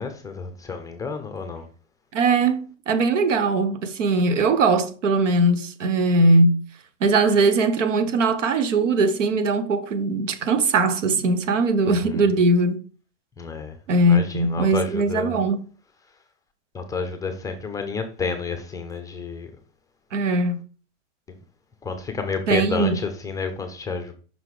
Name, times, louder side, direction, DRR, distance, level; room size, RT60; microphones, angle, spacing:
voice 1, 0.0-1.6 12.0-12.2 13.4-13.7 14.1-15.4 16.7-19.5 21.8-24.1, left 4 dB, 10° left, 0.6 m, -30 dB
voice 2, 2.1-6.6 7.0-12.8 13.9-15.6 20.1-20.6 22.5-23.0, right 2 dB, 85° right, 1.2 m, -20 dB
5.7 x 3.9 x 4.7 m
hypercardioid pair, 140°, 36 cm